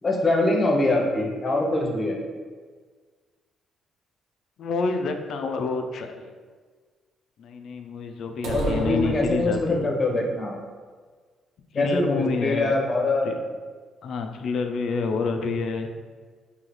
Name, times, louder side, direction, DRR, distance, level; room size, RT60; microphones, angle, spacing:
voice 1, 0.0-2.2 8.5-10.5 11.7-13.3, left 2 dB, 35° left, 0 dB, 0.8 m, -23 dB
voice 2, 4.6-6.3 7.4-9.9 11.7-12.7 13.2-13.3 14.0-15.9, left 4 dB, 65° left, 5 dB, 0.4 m, -28 dB
sound 1, 8.4-10.0, right 2 dB, 80° right, 0.5 m, -32 dB
3.9 x 2.8 x 3.1 m, 1.5 s
cardioid pair, 90°, 0 cm